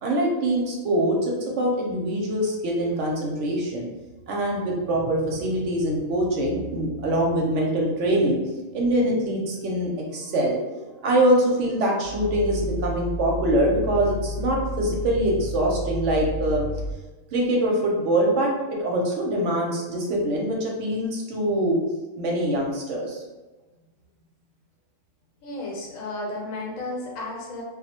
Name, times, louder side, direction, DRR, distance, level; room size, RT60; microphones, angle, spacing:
voice 1, 0.0-3.9 4.3-8.4 8.7-10.6 11.0-16.7 17.3-18.5 18.8-21.8 22.2-23.2, right 1 dB, 70° right, -1 dB, 0.8 m, -24 dB
Growling, 12.0-17.0, left 1 dB, 5° right, 0.9 m, -31 dB
voice 2, 25.4-27.6, left 2 dB, 75° left, -2 dB, 1.1 m, -33 dB
2.3 x 2.0 x 2.8 m, 1.2 s
omnidirectional pair, 1.4 m